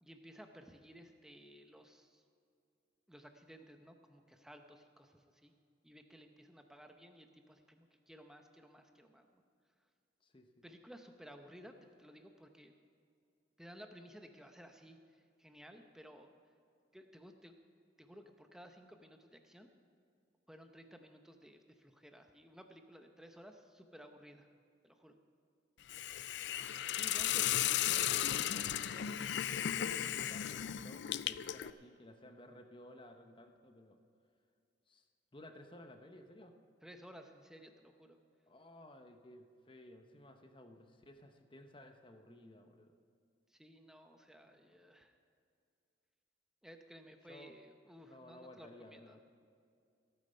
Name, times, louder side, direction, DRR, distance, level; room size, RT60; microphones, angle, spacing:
voice 1, 0.0-2.2 3.1-5.5 5.8-9.4 10.6-12.7 13.6-16.3 16.9-17.6 18.0-19.7 20.5-24.5 24.8-25.1 36.8-38.2 43.5-45.2 46.6-49.2, equal, 5° right, 5 dB, 0.7 m, -56 dB
voice 2, 10.2-10.6 26.9-34.0 34.9-35.0 35.3-36.6 38.5-42.9 44.5-44.7 47.3-47.6 48.0-49.2, left 1 dB, 25° left, 6 dB, 0.9 m, -56 dB
Hiss, 25.9-31.7, left 11 dB, 65° left, 0.4 m, -35 dB
16.0 x 9.2 x 5.6 m, 2.4 s
head